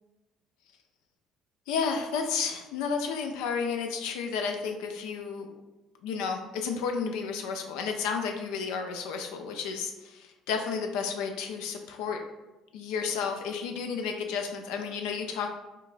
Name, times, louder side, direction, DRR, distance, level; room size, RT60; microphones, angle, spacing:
voice 1, 1.7-5.5 6.0-10.2 10.5-12.2 12.7-15.5, left 6 dB, 75° left, 4 dB, 0.3 m, -32 dB
4.6 x 2.2 x 2.4 m, 1.1 s
hypercardioid pair, 55°, 0 cm